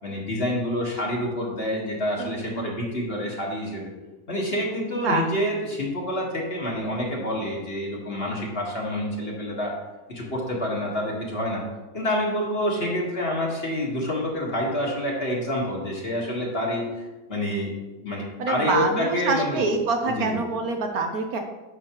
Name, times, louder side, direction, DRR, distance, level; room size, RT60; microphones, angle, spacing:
voice 1, 0.0-3.9 4.3-9.7 10.1-11.6 11.9-16.9 17.3-17.7 18.0-19.7 20.1-20.4, left 1 dB, 35° left, -2 dB, 1.7 m, -27 dB
voice 2, 2.2-2.7 5.0-5.3 18.4-21.4, right 3 dB, 65° right, 4 dB, 1.1 m, -26 dB
10.5 x 6.2 x 3.0 m, 1.1 s
omnidirectional pair, 1.8 m